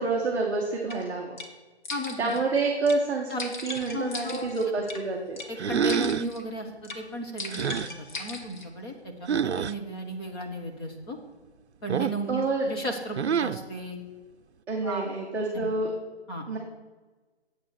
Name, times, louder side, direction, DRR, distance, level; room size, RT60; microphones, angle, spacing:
voice 1, 0.0-1.4 2.2-5.4 12.3-12.7 14.7-15.9 16.5-16.6, right 3 dB, 5° right, -9 dB, 0.9 m, -28 dB
sound 1, 0.9-1.0 1.4-1.5 1.8-2.4 2.9-3.0 3.4-5.0 5.4-5.5 5.9-6.4 6.8-7.0 7.4-8.7, left 2 dB, 45° left, 1.5 m, -38 dB
voice 2, 1.9-2.3 3.3-3.4 3.9-4.5 5.5-7.9 8.2-11.2 11.8-14.0 14.8-15.1 15.5-15.7 16.3-16.4, right 1 dB, 20° left, 2 dB, 1.4 m, -35 dB
sound 2, 5.6-6.3 7.5-7.9 9.3-9.7 11.9-12.3 13.1-13.7, right 7 dB, 75° right, 0.6 m, -27 dB
9.7 x 8.3 x 6.5 m, 1.3 s
figure-of-eight pair, 160°, 33 cm